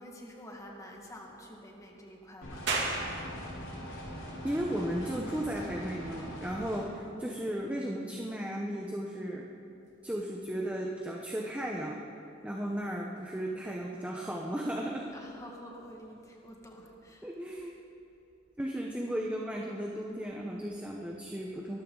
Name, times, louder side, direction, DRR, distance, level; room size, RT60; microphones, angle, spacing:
voice 1, 0.0-2.9 15.1-17.3, equal, 15° left, 0 dB, 1.9 m, -48 dB
sound 1, 2.4-6.8, equal, 75° left, 4.3 m, -42 dB
sound 2, 2.7-15.8, right 3 dB, 65° right, 2.6 m, -44 dB
voice 2, 4.4-9.5 10.0-12.1 12.4-15.1 17.2-17.7 18.6-21.8, right 1 dB, 5° right, -1 dB, 0.9 m, -35 dB
23.5 x 13.5 x 4.0 m, 2.7 s
head